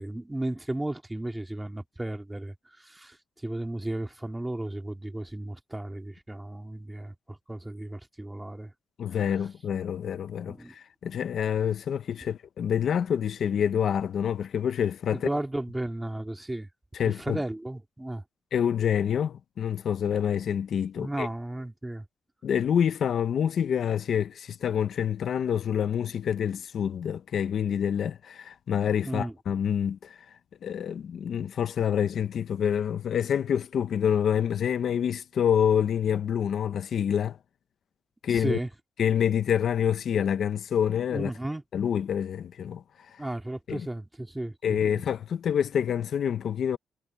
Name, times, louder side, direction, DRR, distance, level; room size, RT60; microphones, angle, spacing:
voice 1, 0.0-8.7 9.0-9.2 10.5-10.7 15.1-16.7 17.0-18.2 20.9-22.1 29.0-29.3 38.3-38.7 41.1-41.6 43.2-44.8, right 1 dB, 10° right, 2.1 m, -34 dB
voice 2, 9.0-15.3 16.9-17.4 18.5-21.3 22.4-30.3 30.6-37.4 38.2-38.6 39.0-41.3 41.7-43.2 43.7-43.8 44.6-46.8, left 8 dB, 50° left, 0.7 m, -27 dB
wide cardioid pair, 175°, 0 cm